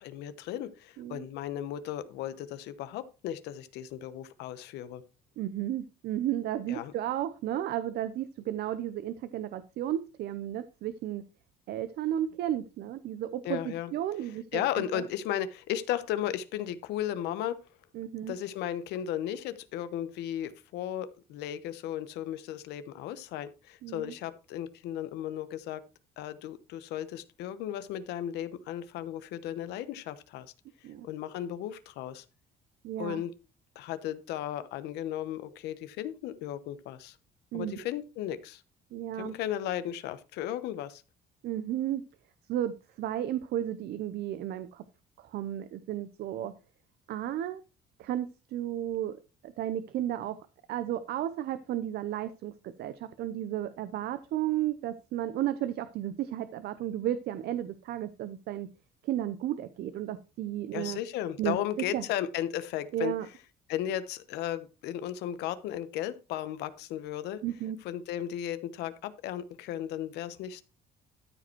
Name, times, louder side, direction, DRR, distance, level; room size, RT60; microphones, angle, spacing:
voice 1, 0.0-5.0 6.7-6.9 13.4-13.9 14.5-17.6 18.3-25.8 26.2-30.5 31.0-32.2 33.0-33.3 33.7-37.2 37.5-38.6 39.2-41.0 60.7-63.1 63.7-67.4 67.8-70.6, left 11 dB, 85° left, 13 dB, 1.0 m, -35 dB
voice 2, 1.0-1.3 5.4-11.2 11.7-15.0 17.9-18.3 23.8-24.1 30.8-31.1 32.8-33.2 37.5-37.9 38.9-39.3 41.4-42.0 42.5-44.8 45.2-46.5 47.1-47.6 48.0-50.4 50.7-58.7 59.0-61.0 61.4-61.6 61.9-62.0 62.9-63.3 67.4-67.8, right 12 dB, 70° right, 13 dB, 0.7 m, -33 dB
13.0 x 5.2 x 4.5 m, 0.31 s
cardioid pair, 110°, 17 cm